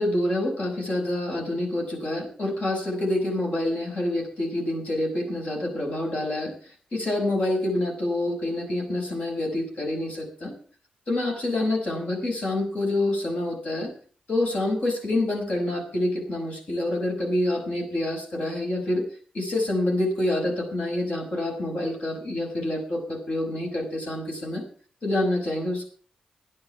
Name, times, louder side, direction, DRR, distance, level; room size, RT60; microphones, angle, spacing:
voice 1, 0.0-6.6 6.9-10.5 11.1-13.9 14.3-19.0 19.3-24.6 25.0-25.9, left 1 dB, 60° left, 0 dB, 6.3 m, -27 dB
11.0 x 10.5 x 7.0 m, 0.44 s
cardioid pair, 50°, 3 cm